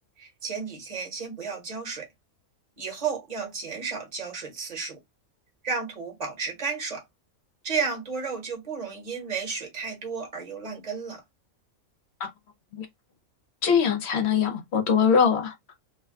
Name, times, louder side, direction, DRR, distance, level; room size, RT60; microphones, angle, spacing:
voice 1, 0.2-2.1 2.8-5.0 5.6-7.0 7.6-11.2, right 5 dB, 30° right, 1.0 m, -32 dB
voice 2, 13.6-15.8, left 7 dB, 55° left, 0.9 m, -23 dB
2.5 x 2.3 x 3.4 m
omnidirectional pair, 1.5 m